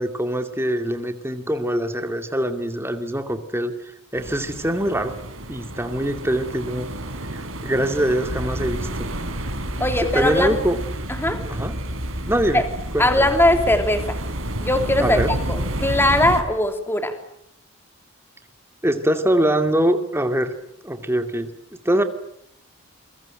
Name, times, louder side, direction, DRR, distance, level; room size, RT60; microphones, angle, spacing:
voice 1, 0.0-5.2 5.5-6.9 7.3-9.1 10.1-10.8 11.5-11.8 12.2-12.6 12.9-13.3 15.0-15.3 18.8-20.5 20.8-22.0, right 1 dB, 10° right, 7 dB, 2.5 m, -23 dB
sound 1, 4.2-16.4, right 1 dB, 70° right, 4.1 m, -31 dB
sound 2, 8.2-16.5, equal, 50° right, 5.0 m, -32 dB
voice 2, 9.8-10.6 11.2-11.4 12.5-12.6 13.0-14.2 14.6-15.2 15.5-17.1, left 1 dB, 10° left, 7 dB, 3.0 m, -20 dB
28.5 x 23.0 x 9.1 m, 0.72 s
head